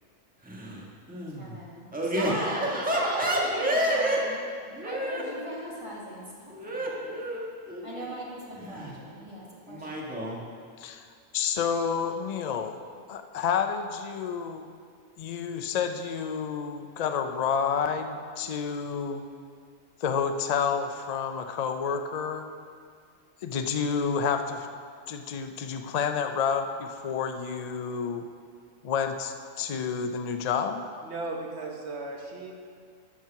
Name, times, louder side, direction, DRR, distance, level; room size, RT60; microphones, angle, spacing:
voice 1, 0.4-1.6 1.9-4.2 4.7-5.2 6.5-8.2 8.5-9.0 9.7-10.4, right 1 dB, 5° right, -3 dB, 1.3 m, -30 dB
voice 2, 1.4-4.4 4.8-6.9 7.8-10.1, right 1 dB, 25° right, -5 dB, 1.8 m, -38 dB
voice 3, 11.3-12.7 13.1-14.7 15.2-19.2 20.0-22.5 23.4-24.7 25.1-28.3 28.8-30.8, left 6 dB, 85° left, 7 dB, 0.3 m, -29 dB
voice 4, 31.0-32.5, right 2 dB, 55° right, 0 dB, 1.3 m, -36 dB
12.5 x 4.6 x 5.8 m, 2.1 s
omnidirectional pair, 1.4 m